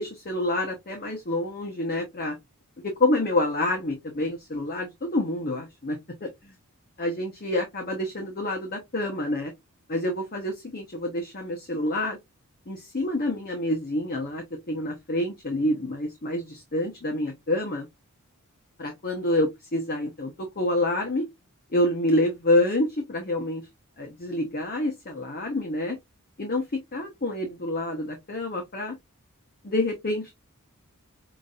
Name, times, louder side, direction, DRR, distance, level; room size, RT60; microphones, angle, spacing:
voice 1, 0.0-2.4 2.8-6.5 7.0-9.5 9.9-12.2 12.7-17.9 18.8-21.3 21.7-23.7 24.0-26.0 26.4-28.9 29.6-30.3, left 1 dB, 45° left, 0.9 m, -27 dB
5.9 x 2.7 x 2.4 m
head